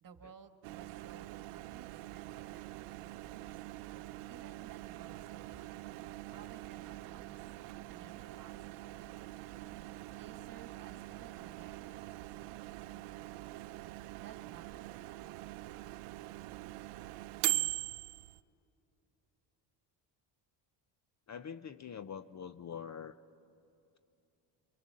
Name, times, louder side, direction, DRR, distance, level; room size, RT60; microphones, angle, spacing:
voice 1, 0.0-3.6 4.3-6.0 6.3-7.4 7.9-9.6 10.1-13.6 14.2-15.6, right 7 dB, 40° right, 8 dB, 1.6 m, -58 dB
Microwave oven, 0.6-18.4, right 18 dB, 85° right, 0.7 m, -43 dB
voice 2, 21.3-23.2, left 7 dB, 35° left, 13 dB, 0.6 m, -44 dB
30.0 x 23.5 x 7.6 m, 2.8 s
cardioid pair, 105°, 50 cm